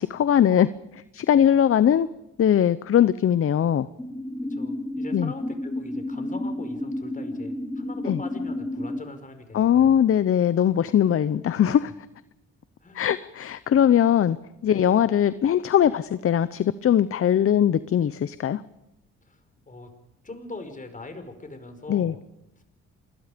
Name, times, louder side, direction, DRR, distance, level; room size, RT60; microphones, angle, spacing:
voice 1, 0.0-2.1 2.4-3.9 5.1-5.3 8.1-8.2 9.5-11.9 12.9-14.4 14.6-18.6 21.9-22.1, left 9 dB, 45° left, 15 dB, 0.8 m, -21 dB
sound 1, 4.0-9.0, left 1 dB, 5° left, 4.2 m, -31 dB
voice 2, 4.5-10.0 12.8-13.1 14.7-14.8 19.2-19.4 19.7-19.9 20.2-22.1 22.6-22.7, left 2 dB, 25° left, 7 dB, 5.3 m, -41 dB
28.0 x 21.5 x 5.2 m, 0.90 s
cardioid pair, 90°, 30 cm